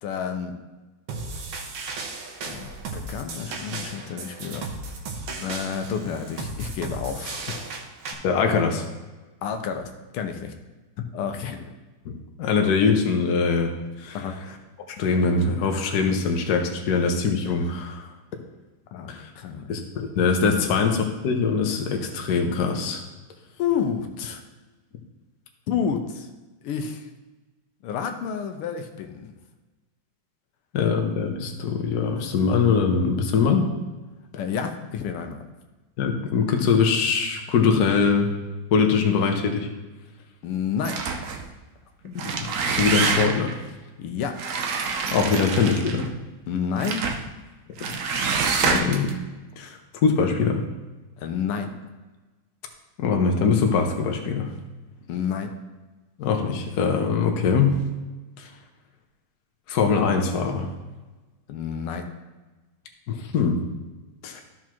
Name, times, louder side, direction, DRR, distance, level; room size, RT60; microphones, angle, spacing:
voice 1, 0.0-0.5 2.4-4.7 5.4-7.7 9.4-10.5 11.0-11.8 14.1-14.4 18.9-19.7 20.6-20.7 23.6-24.4 25.7-26.3 26.6-27.1 27.8-29.3 34.3-35.4 40.4-41.0 44.0-44.4 46.5-47.1 51.2-51.7 55.1-55.5 61.5-62.1, left 7 dB, 85° left, 5 dB, 1.6 m, -30 dB
sound 1, 1.1-8.1, right 3 dB, 70° right, 1.8 m, -35 dB
voice 2, 8.2-8.8 12.0-13.7 14.0-14.2 15.0-18.1 19.1-19.3 19.7-23.0 30.7-33.7 36.0-38.4 38.7-39.7 42.0-43.6 45.1-46.1 47.8-48.2 48.6-49.1 49.6-50.7 53.0-54.5 56.2-57.8 58.4-58.5 59.7-60.7 63.1-63.6 64.2-64.4, left 5 dB, 55° left, 3 dB, 1.3 m, -22 dB
sound 2, 40.8-41.5 42.1-43.5 44.4-46.1 46.8-47.2 47.8-49.1, right 5 dB, 90° right, 0.7 m, -26 dB
13.0 x 6.0 x 3.0 m, 1.2 s
omnidirectional pair, 2.4 m